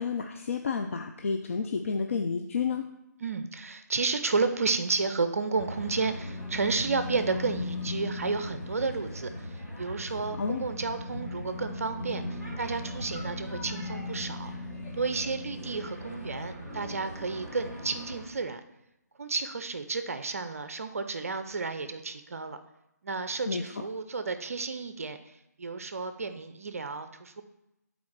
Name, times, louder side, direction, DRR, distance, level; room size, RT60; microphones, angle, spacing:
voice 1, 0.0-2.9 10.4-10.6 23.5-23.6, left 5 dB, 45° left, 4 dB, 0.4 m, -30 dB
voice 2, 3.2-14.5 14.9-18.6 19.2-22.6 23.0-27.4, right 4 dB, 50° right, 9 dB, 0.5 m, -32 dB
sound 1, 5.6-18.2, left 1 dB, 25° left, 2.5 m, -38 dB
9.4 x 4.2 x 4.6 m, 0.90 s
figure-of-eight pair, 145°, 10 cm